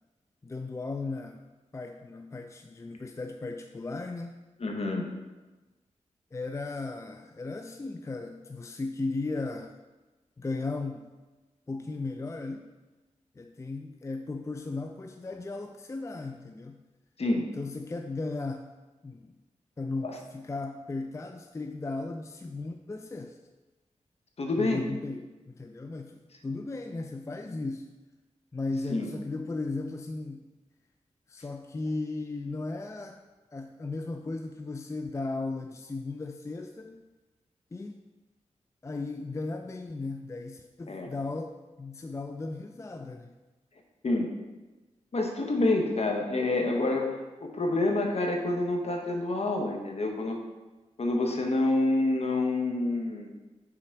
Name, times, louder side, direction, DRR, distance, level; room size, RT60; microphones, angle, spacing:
voice 1, 0.4-1.4 1.7-4.3 6.3-9.7 10.4-11.1 11.7-12.7 13.4-16.8 17.6-18.7 19.0-19.3 19.8-23.4 24.6-27.9 28.5-30.5 31.3-33.2 33.5-37.0 37.7-38.0 38.8-43.4, left 3 dB, 25° left, 5 dB, 0.4 m, -36 dB
voice 2, 4.6-5.1 17.2-17.5 20.0-20.1 24.4-24.8 28.9-29.1 40.9-41.1 44.0-44.3 45.1-47.1 47.4-50.4 51.0-53.3, left 2 dB, 55° left, 2 dB, 1.0 m, -27 dB
6.0 x 3.8 x 4.5 m, 1.2 s
cardioid pair, 65°, 12 cm